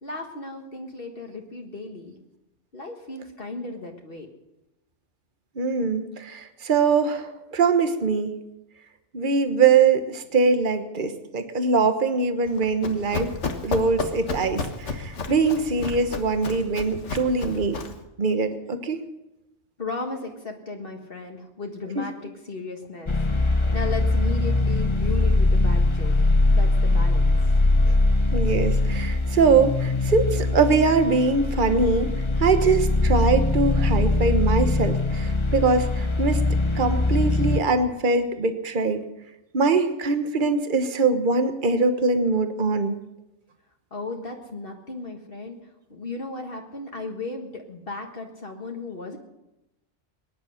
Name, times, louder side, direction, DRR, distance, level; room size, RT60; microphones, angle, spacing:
voice 1, 0.0-2.1 2.7-4.3 19.8-27.5 43.9-45.6 45.9-49.2, left 3 dB, 50° left, 2 dB, 1.8 m, -35 dB
voice 2, 5.6-8.3 9.1-13.3 13.6-17.8 18.2-19.0 22.0-22.1 27.9-28.0 28.3-32.1 32.4-36.4 36.7-39.0 39.5-43.0, right 4 dB, 45° right, 8 dB, 1.4 m, -22 dB
Run, 12.5-18.0, left 4 dB, 75° left, 1.6 m, -32 dB
sound 1, 23.1-37.6, left 2 dB, 30° left, 0.8 m, -22 dB
21.5 x 10.5 x 6.5 m, 0.93 s
omnidirectional pair, 1.2 m